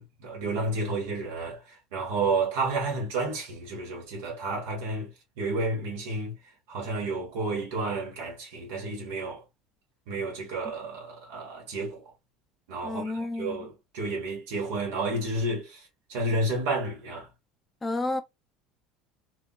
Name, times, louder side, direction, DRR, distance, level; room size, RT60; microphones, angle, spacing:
voice 1, 0.0-5.1 5.4-6.4 6.7-9.4 10.1-12.0 12.7-15.8 16.1-17.3, right 2 dB, 85° right, 1.5 m, -31 dB
voice 2, 12.8-13.7 17.8-18.2, left 2 dB, 10° left, 0.4 m, -31 dB
3.6 x 2.4 x 2.4 m
cardioid pair, 175°, 0 cm